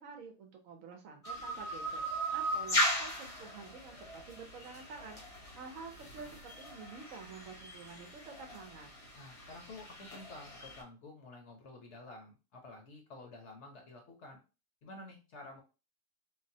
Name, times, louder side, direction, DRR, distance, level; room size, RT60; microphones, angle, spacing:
voice 1, 0.0-8.9, right 5 dB, 70° right, 3 dB, 1.0 m, -49 dB
sound 1, 1.2-10.8, equal, 30° left, 0.7 m, -38 dB
voice 2, 9.2-14.4 14.8-15.6, left 2 dB, 55° left, 2 dB, 0.9 m, -51 dB
3.8 x 2.0 x 2.7 m, 0.31 s
omnidirectional pair, 1.6 m